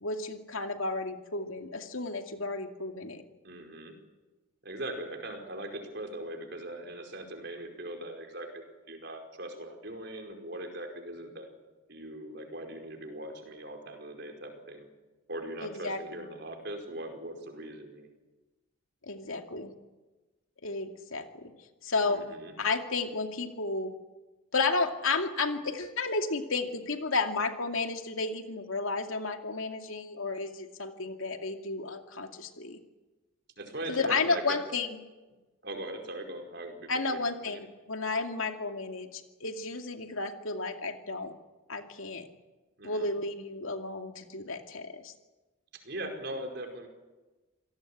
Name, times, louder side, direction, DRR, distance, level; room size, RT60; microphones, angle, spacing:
voice 1, 0.0-3.2 15.6-16.0 19.0-19.7 20.6-21.5 21.8-22.2 22.6-23.9 24.5-32.8 33.9-34.9 36.9-41.3 41.7-42.3 42.8-45.1, left 3 dB, 80° left, 5 dB, 2.5 m, -32 dB
voice 2, 3.4-3.9 4.6-11.5 11.9-14.9 15.3-18.1 22.0-22.5 33.6-34.6 35.6-37.2 37.5-37.6 42.8-43.1 45.7-46.9, right 1 dB, 55° right, 4 dB, 5.1 m, -40 dB
27.5 x 18.0 x 8.7 m, 1.2 s
head